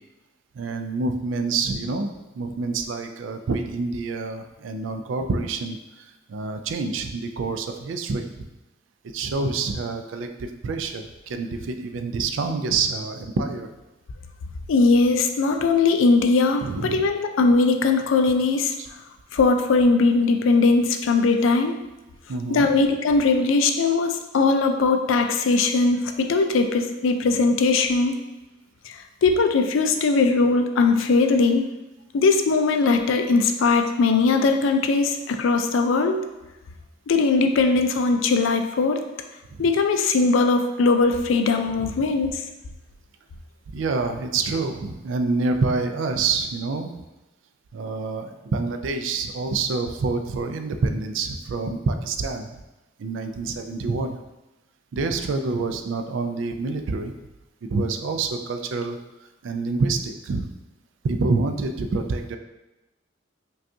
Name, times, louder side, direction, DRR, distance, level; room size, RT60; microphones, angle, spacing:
voice 1, 0.6-2.1 2.4-5.8 6.3-8.2 9.1-10.3 10.6-13.7 16.6-17.0 18.8-18.9 22.3-22.7 39.5-39.6 41.8-41.9 43.7-46.9 47.7-52.5 53.0-54.2 54.9-57.1 57.6-59.0 59.4-60.5 61.0-62.4, right 3 dB, 70° right, 6 dB, 0.4 m, -27 dB
voice 2, 14.7-18.7 19.3-21.8 22.5-28.1 28.9-31.6 32.1-36.3 37.1-39.0 39.6-42.3, left 3 dB, 75° left, 5 dB, 0.4 m, -20 dB
5.1 x 2.3 x 2.7 m, 1.0 s
head